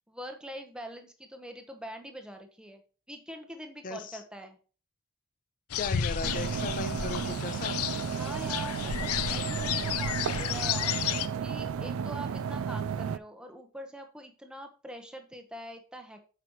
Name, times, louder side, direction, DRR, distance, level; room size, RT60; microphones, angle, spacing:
voice 1, 0.1-2.8 3.1-4.6 8.1-16.2, equal, 5° right, 5 dB, 1.1 m, -44 dB
voice 2, 3.8-4.2 5.7-7.8, left 3 dB, 35° left, 11 dB, 0.7 m, -37 dB
sound 1, 5.7-11.3, left 9 dB, 75° left, 0.6 m, -32 dB
sound 2, 6.2-13.2, right 7 dB, 70° right, 0.4 m, -33 dB
8.4 x 5.9 x 3.0 m, 0.37 s
head